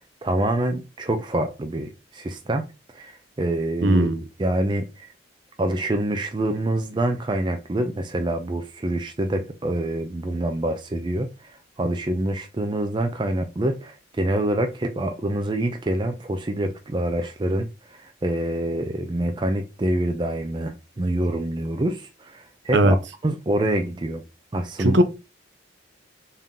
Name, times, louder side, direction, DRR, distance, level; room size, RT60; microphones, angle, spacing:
voice 1, 0.2-2.6 2.9-4.1 4.4-5.1 5.6-23.0 23.2-24.2 24.5-25.0, right 1 dB, 25° right, 0.4 m, -26 dB
voice 2, 3.8-4.2 22.7-22.9 24.8-25.0, right 1 dB, 65° right, 0.6 m, -18 dB
3.6 x 2.8 x 3.7 m
head